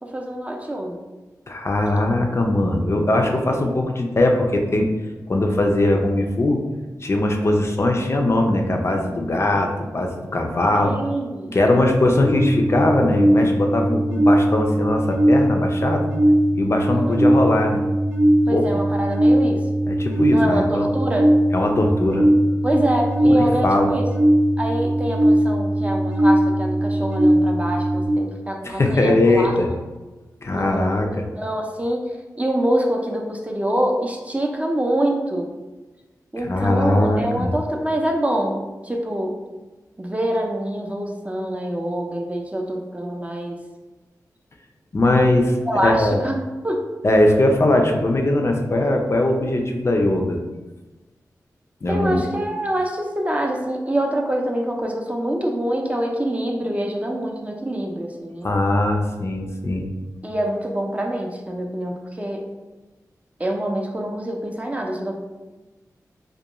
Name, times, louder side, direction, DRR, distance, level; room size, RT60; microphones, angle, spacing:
voice 1, 0.0-1.0 7.4-7.6 10.7-11.6 16.9-17.2 18.5-19.7 20.3-21.3 22.6-24.1 24.6-29.6 30.5-32.1 32.4-35.5 36.3-39.4 40.0-43.6 45.7-46.9 51.9-58.5 60.2-62.5 63.4-65.2, right 1 dB, 20° right, 1 dB, 0.4 m, -25 dB
voice 2, 1.5-4.9 5.3-6.6 7.0-10.9 11.5-16.0 16.5-17.8 18.5-18.6 19.9-20.9 21.5-22.3 23.2-23.9 28.6-29.7 30.4-31.3 36.4-37.5 44.9-46.2 47.0-50.4 51.8-52.2 58.4-59.9, left 1 dB, 40° left, 2 dB, 0.4 m, -20 dB
sound 1, 12.2-28.1, right 1 dB, 50° right, 0.8 m, -19 dB
2.3 x 2.2 x 2.8 m, 1.2 s
cardioid pair, 50°, 7 cm